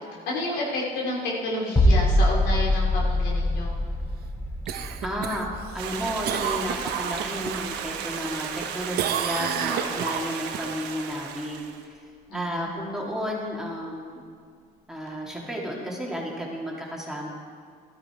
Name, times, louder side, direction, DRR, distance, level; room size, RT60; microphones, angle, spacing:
voice 1, 0.2-3.7 12.3-12.7, left 1 dB, 85° left, -2 dB, 3.2 m, -30 dB
sound 1, 1.8-7.5 7.7-8.0, left 1 dB, 15° left, 2.6 m, -24 dB
Cough, 4.7-7.7 8.1-8.7 9.0-10.6 15.1-15.2, right 9 dB, 70° right, 0.9 m, -30 dB
voice 2, 5.0-12.0 12.3-14.2 14.9-17.3, equal, 5° right, -3 dB, 2.6 m, -32 dB
Stream, 5.8-11.9, right 7 dB, 90° right, 1.1 m, -34 dB
14.0 x 13.0 x 4.6 m, 2.1 s
cardioid pair, 110°, 17 cm